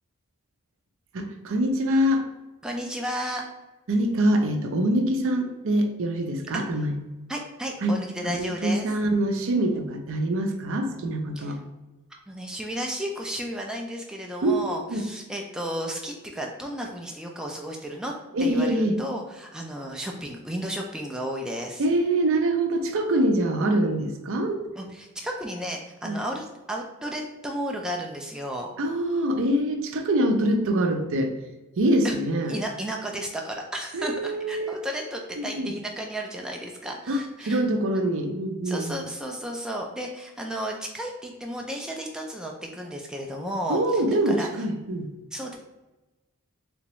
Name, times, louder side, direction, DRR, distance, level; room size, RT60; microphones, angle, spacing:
voice 1, 1.1-2.2 3.9-7.0 7.8-7.9 8.3-11.6 14.4-15.0 18.3-19.0 21.8-24.7 26.0-26.2 28.8-31.3 31.8-32.5 33.9-34.7 35.4-35.7 37.1-39.0 43.7-45.1, right 1 dB, 65° right, 5 dB, 0.5 m, -24 dB
voice 2, 2.6-3.4 7.3-8.9 11.4-11.6 12.3-18.1 18.4-21.8 24.8-28.7 29.0-29.2 32.0-37.6 38.6-44.5 45.3-45.6, equal, 5° right, 0 dB, 0.3 m, -33 dB
3.5 x 3.0 x 3.0 m, 1.1 s
head